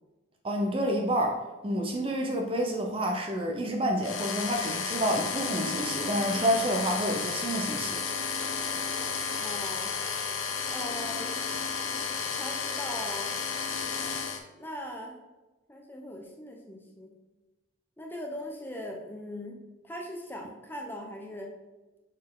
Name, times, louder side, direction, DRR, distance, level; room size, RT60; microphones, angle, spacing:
voice 1, 0.4-8.0, right 1 dB, 25° right, 2 dB, 0.6 m, -29 dB
sound 1, 4.0-14.4, left 6 dB, 75° left, 0.7 m, -32 dB
voice 2, 9.4-9.9 10.7-11.4 12.3-13.3 14.6-15.2 15.7-17.1 18.0-19.6 19.8-21.5, left 1 dB, 10° left, 0 dB, 0.7 m, -40 dB
6.3 x 4.1 x 3.9 m, 1.1 s
head